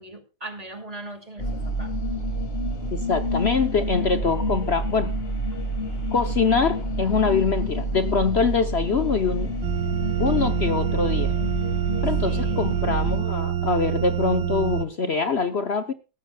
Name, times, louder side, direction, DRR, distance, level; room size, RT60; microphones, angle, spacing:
voice 1, 0.0-1.5 1.8-1.9 12.2-12.7, right 2 dB, 20° right, 6 dB, 2.5 m, -39 dB
sound 1, 1.4-13.2, right 1 dB, 30° left, 2.5 m, -28 dB
voice 2, 2.9-5.2 6.1-9.6 10.2-11.3 12.0-15.9, left 5 dB, 65° left, 9 dB, 0.6 m, -24 dB
sound 2, 9.6-14.8, right 9 dB, 60° right, 1.6 m, -26 dB
17.5 x 14.5 x 2.3 m, 0.31 s
omnidirectional pair, 2.3 m